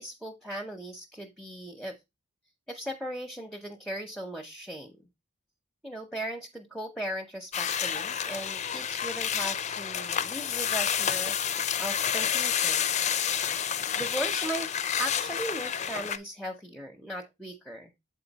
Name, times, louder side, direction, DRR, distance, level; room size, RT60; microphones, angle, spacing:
voice 1, 0.0-2.0 2.7-5.0 5.8-13.0 14.0-17.9, right 1 dB, ahead, 4 dB, 0.7 m, -38 dB
sound 1, 7.5-16.2, left 8 dB, 30° left, 0.4 m, -29 dB
7.7 x 4.4 x 3.9 m, 0.21 s
head